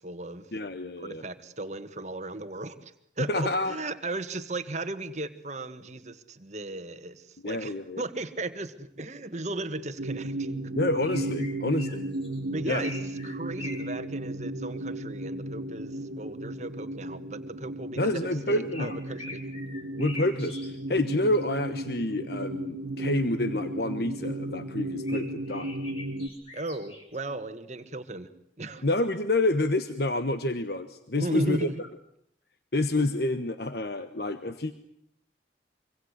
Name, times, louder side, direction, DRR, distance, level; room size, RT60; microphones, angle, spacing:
voice 1, 0.0-0.5 1.0-10.5 10.9-11.1 12.5-13.0 13.2-19.4 26.5-28.3 28.6-28.8 31.1-31.7, right 2 dB, 40° right, 10 dB, 1.7 m, -36 dB
voice 2, 0.5-1.2 3.2-3.8 7.4-8.0 10.7-12.0 12.6-12.9 18.0-19.0 20.0-25.7 28.8-31.7 32.7-34.7, left 2 dB, 60° left, 10 dB, 1.2 m, -28 dB
sound 1, 10.0-26.3, right 1 dB, 90° right, 1.9 m, -35 dB
sound 2, 11.0-12.4 12.8-13.9 18.7-20.7 21.2-21.4 24.8-27.2, left 2 dB, 30° left, 6.2 m, -44 dB
25.5 x 25.0 x 8.1 m, 0.69 s
head